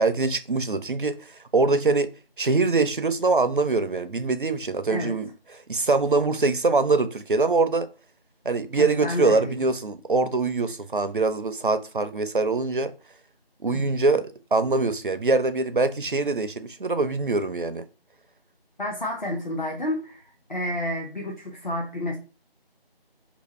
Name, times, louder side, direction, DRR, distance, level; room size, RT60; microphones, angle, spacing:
voice 1, 0.0-2.1 2.4-7.9 8.4-12.9 13.6-17.8, right 3 dB, 60° right, 0.4 m, -23 dB
voice 2, 8.7-9.7 13.7-13.9 18.8-20.2 20.5-22.2, left 1 dB, 50° left, 0.7 m, -30 dB
2.8 x 2.6 x 4.1 m
figure-of-eight pair, 175°, 30 cm